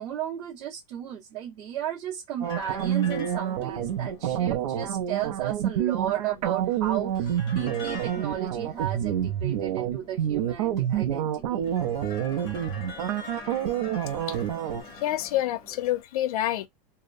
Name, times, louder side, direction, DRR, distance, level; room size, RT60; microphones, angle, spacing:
voice 1, 0.0-11.7, right 11 dB, 35° right, 0.8 m, -34 dB
sound 1, 2.4-16.0, left 4 dB, 20° left, 0.7 m, -45 dB
sound 2, 2.4-14.8, right 10 dB, 75° right, 0.6 m, -28 dB
voice 2, 15.0-16.7, left 13 dB, 70° left, 0.5 m, -27 dB
2.8 x 2.0 x 2.4 m
supercardioid pair, 180°, 20 cm